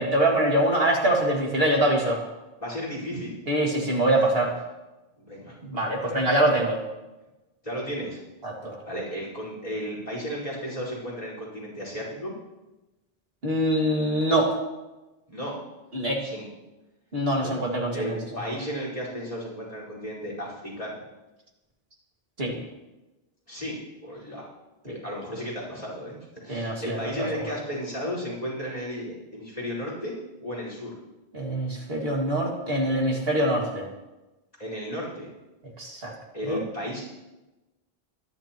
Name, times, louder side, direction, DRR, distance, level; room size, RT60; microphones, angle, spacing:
voice 1, 0.0-2.2 3.5-4.5 5.6-6.8 8.4-8.8 13.4-14.5 15.9-16.2 17.1-18.2 22.4-22.6 24.9-25.0 26.5-27.3 31.3-33.9 35.8-36.1 36.5-36.6, right 1 dB, 70° right, -1 dB, 2.4 m, -24 dB
voice 2, 2.6-3.4 4.4-4.5 5.2-5.5 6.0-6.2 7.6-8.2 8.9-12.3 15.3-15.5 16.2-16.5 17.3-17.5 17.9-21.0 23.5-23.8 24.0-24.5 24.8-30.1 30.4-30.9 34.6-35.3 36.3-37.0, equal, 40° left, -4 dB, 5.0 m, -34 dB
22.5 x 10.5 x 3.0 m, 1.1 s
omnidirectional pair, 1.0 m